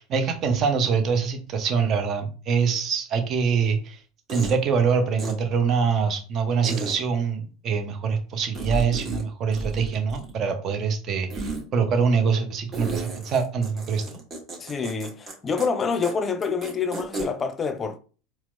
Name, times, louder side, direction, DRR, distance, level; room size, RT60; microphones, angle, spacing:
voice 1, 0.0-4.0 4.3-14.2, right 6 dB, 40° right, 0.7 m, -24 dB
sound 1, 3.4-3.5 4.3-4.6 5.2-5.3 6.6-7.0 8.5-9.2 9.5-10.4 11.3-11.6 12.7-15.3 15.6-15.7 16.0-16.1 16.4-17.3, right 3 dB, 25° right, 1.3 m, -32 dB
voice 2, 14.6-18.0, left 5 dB, 25° left, 0.4 m, -27 dB
4.3 x 2.0 x 2.5 m
hypercardioid pair, 80°, 0 cm